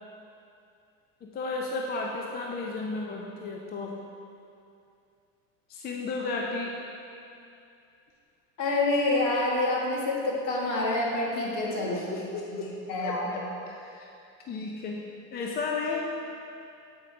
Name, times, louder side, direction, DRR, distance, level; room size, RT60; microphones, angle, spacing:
voice 1, 1.2-4.0 5.7-6.7 11.7-12.7 13.0-14.1 14.5-16.2, left 3 dB, 25° left, -1 dB, 0.4 m, -34 dB
voice 2, 8.6-12.2 12.6-13.3, left 2 dB, 50° left, -3 dB, 1.6 m, -27 dB
7.9 x 5.0 x 3.3 m, 2.6 s
supercardioid pair, 105°, 41 cm